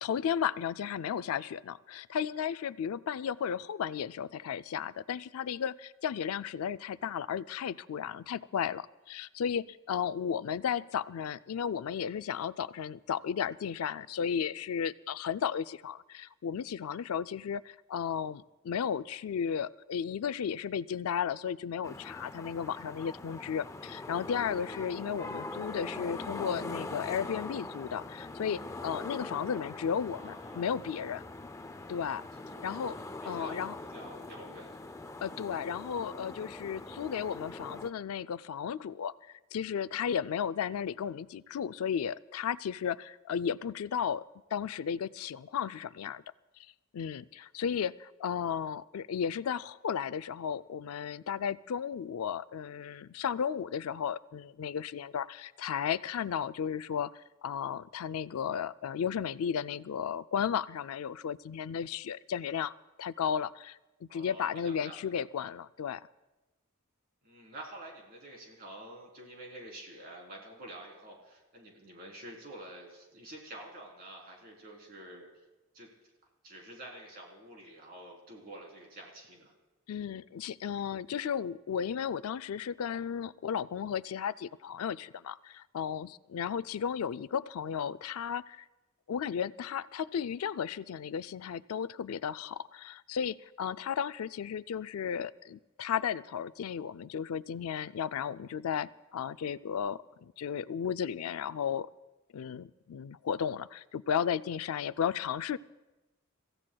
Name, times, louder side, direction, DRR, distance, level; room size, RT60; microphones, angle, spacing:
voice 1, 0.0-31.2 31.9-32.3 32.6-33.0 33.2-33.8 35.2-39.1 39.5-44.2 44.5-46.2 46.9-62.7 63.0-66.0 79.9-88.6 89.1-101.9 102.3-105.6, left 7 dB, 85° left, 15 dB, 0.4 m, -34 dB
sound 1, 21.8-37.9, left 2 dB, 15° left, 0.5 m, -42 dB
voice 2, 30.1-30.8 32.4-32.9 33.2-34.8 64.1-65.0 67.2-75.3 75.7-75.9 76.4-79.5, right 1 dB, 45° right, -1 dB, 3.4 m, -48 dB
30.0 x 15.5 x 2.3 m, 1.1 s
head